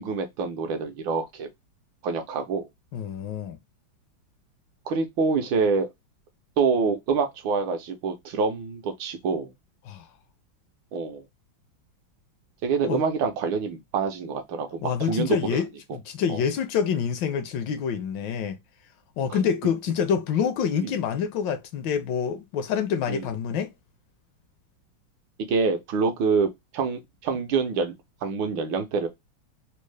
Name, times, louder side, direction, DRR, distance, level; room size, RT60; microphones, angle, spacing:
voice 1, 0.0-1.5 2.0-2.7 4.9-5.9 6.6-9.5 10.9-11.2 12.6-15.6 16.3-16.4 19.3-19.4 20.8-20.9 23.1-23.3 25.5-27.9 28.2-29.1, right 5 dB, 75° right, 1.5 m, -26 dB
voice 2, 2.9-3.6 9.9-10.1 12.9-13.0 14.8-18.6 19.2-23.7, left 7 dB, 75° left, 1.2 m, -27 dB
4.2 x 2.0 x 3.2 m
omnidirectional pair, 2.2 m